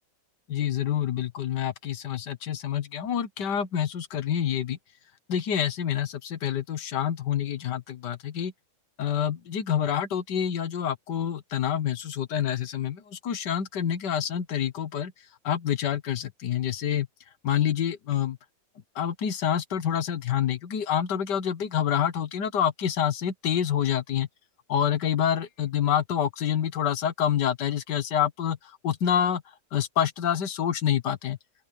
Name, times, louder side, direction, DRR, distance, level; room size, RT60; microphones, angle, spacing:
voice 1, 0.5-4.8 5.3-8.5 9.0-15.1 15.4-17.1 17.4-18.4 18.9-24.3 24.7-28.6 28.8-29.4 29.7-31.4, left 9 dB, 75° left, 1.8 m, -27 dB
open air
omnidirectional pair, 1.9 m